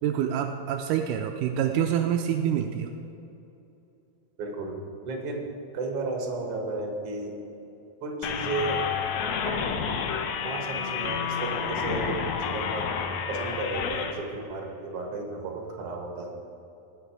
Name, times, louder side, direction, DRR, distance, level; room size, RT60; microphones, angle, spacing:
voice 1, 0.0-3.0, right 9 dB, 85° right, 4 dB, 1.8 m, -26 dB
voice 2, 4.4-5.5 5.7-7.4 8.0-8.8 9.4-9.8 10.4-12.9 13.3-16.3, right 3 dB, 50° right, 0 dB, 2.1 m, -33 dB
sound 1, 8.2-14.1, left 6 dB, 80° left, 1.7 m, -30 dB
18.5 x 6.2 x 4.7 m, 2.9 s
omnidirectional pair, 4.2 m